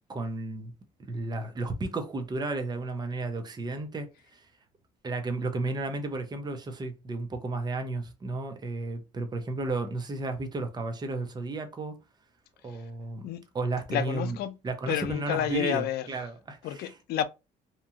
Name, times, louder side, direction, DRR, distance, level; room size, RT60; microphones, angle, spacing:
voice 1, 0.1-0.7 1.1-4.5 5.0-12.0 12.6-13.3 13.5-14.4 14.6-16.9, right 2 dB, 25° right, 0.6 m, -33 dB
voice 2, 13.9-14.6 14.9-16.1 16.6-17.2, left 11 dB, 70° left, 0.4 m, -30 dB
2.9 x 2.3 x 2.7 m
cardioid pair, 110°, 17 cm